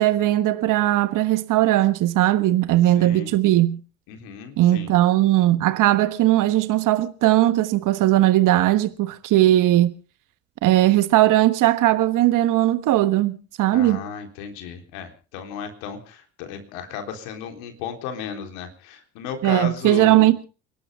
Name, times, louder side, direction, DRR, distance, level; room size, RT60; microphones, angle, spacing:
voice 1, 0.0-3.8 4.6-9.9 10.6-14.0 19.4-20.4, right 15 dB, 60° right, 1.3 m, -18 dB
voice 2, 3.0-3.3 4.1-4.9 13.7-20.3, left 7 dB, 80° left, 3.8 m, -34 dB
30.0 x 12.0 x 3.6 m
hypercardioid pair, 70°, 36 cm